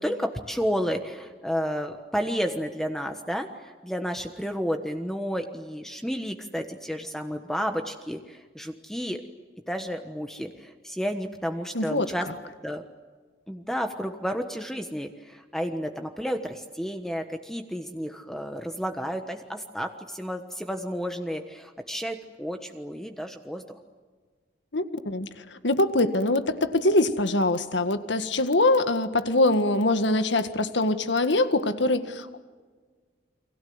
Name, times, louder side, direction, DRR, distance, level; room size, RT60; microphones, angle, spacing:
voice 1, 0.0-9.2 9.7-12.3 12.6-12.8 13.5-23.8, equal, ahead, 5 dB, 1.3 m, -31 dB
voice 2, 11.7-12.1 24.7-32.4, left 2 dB, 75° left, 9 dB, 1.9 m, -23 dB
29.5 x 24.0 x 7.9 m, 1.5 s
head